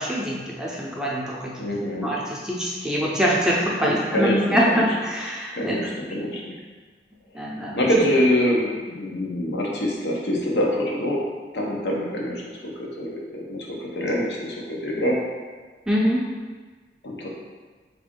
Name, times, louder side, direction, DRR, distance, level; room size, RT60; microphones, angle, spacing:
voice 1, 0.0-1.5 2.0-5.8 7.3-7.9 15.9-16.3, equal, 5° right, -5 dB, 0.4 m, -24 dB
voice 2, 1.6-2.1 3.8-4.8 5.5-6.5 7.7-11.2 11.5-12.4 12.8-14.6 14.8-15.2 17.0-17.3, equal, 75° left, -2 dB, 0.7 m, -25 dB
3.5 x 2.5 x 3.6 m, 1.4 s
head